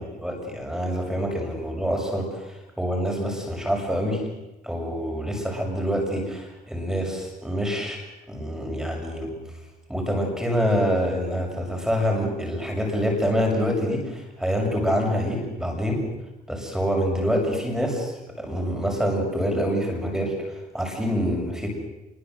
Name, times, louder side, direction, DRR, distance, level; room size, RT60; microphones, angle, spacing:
voice 1, 0.0-4.2 4.6-8.0 8.3-9.3 9.9-16.0 16.5-21.7, equal, 5° right, 1 dB, 6.9 m, -26 dB
26.0 x 23.5 x 8.0 m, 1.0 s
cardioid pair, 110°, 17 cm